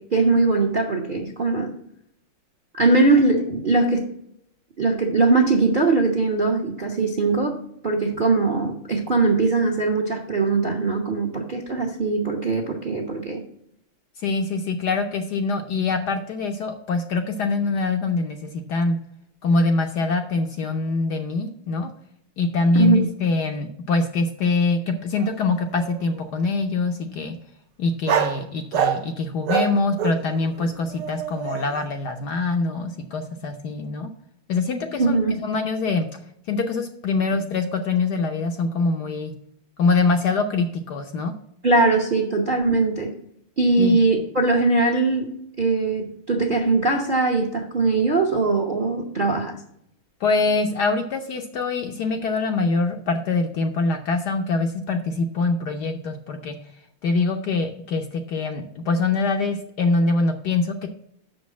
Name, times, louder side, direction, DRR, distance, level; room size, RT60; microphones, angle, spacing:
voice 1, 0.0-1.7 2.7-4.1 4.8-7.6 7.8-13.4 22.7-23.1 35.0-35.3 41.6-43.1 43.6-49.6, right 3 dB, 40° right, 2 dB, 0.7 m, -21 dB
voice 2, 14.2-19.0 19.4-21.9 22.4-27.4 27.8-34.1 34.5-35.2 35.4-36.1 36.5-39.3 39.8-41.3 43.8-44.0 50.2-56.6 57.0-60.9, left 3 dB, 65° left, 5 dB, 1.1 m, -24 dB
sound 1, 25.2-25.3 25.5-26.3 28.1-28.4 28.7-29.1 29.5-31.8, right 8 dB, 70° right, 1.2 m, -26 dB
6.5 x 5.3 x 7.1 m, 0.73 s
omnidirectional pair, 2.3 m